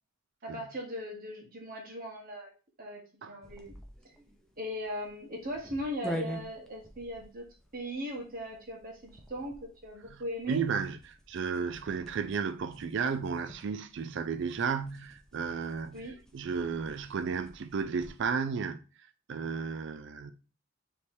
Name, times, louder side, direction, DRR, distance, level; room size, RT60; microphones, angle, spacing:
voice 1, 0.4-2.5 2.8-3.7 4.0-4.1 4.6-7.4 7.7-10.6 15.9-16.2, equal, 50° right, 1.5 m, -39 dB
sound 1, 3.4-18.3, left 1 dB, 5° left, 0.6 m, -47 dB
voice 2, 10.5-11.0 11.3-16.0 16.3-18.8 19.3-20.3, right 5 dB, 65° right, 0.4 m, -33 dB
3.4 x 3.0 x 4.3 m
head